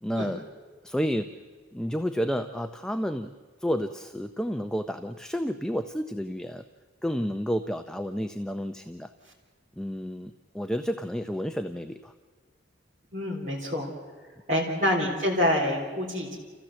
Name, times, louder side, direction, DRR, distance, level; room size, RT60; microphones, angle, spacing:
voice 1, 0.0-0.4 0.8-1.3 1.7-3.3 3.6-6.6 7.0-9.1 9.8-12.1, equal, 5° left, 8 dB, 0.5 m, -30 dB
voice 2, 13.1-13.9 14.5-16.4, left 1 dB, 40° right, -4 dB, 3.8 m, -26 dB
30.0 x 15.0 x 7.5 m, 1.6 s
head